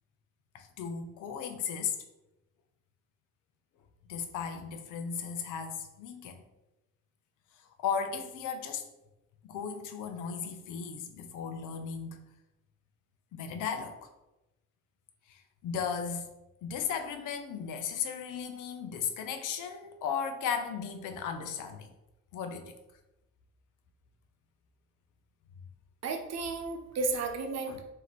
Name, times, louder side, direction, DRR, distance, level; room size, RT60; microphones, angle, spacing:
voice 1, 0.5-2.0 4.1-6.4 7.8-8.8 9.4-12.2 13.3-14.1 15.3-16.3 16.6-21.9 22.3-22.7 27.7-27.8, left 6 dB, 90° left, 7 dB, 0.7 m, -36 dB
voice 2, 26.0-27.8, right 3 dB, 60° right, 5 dB, 0.8 m, -33 dB
4.4 x 2.8 x 4.1 m, 0.94 s
cardioid pair, 90°, 30 cm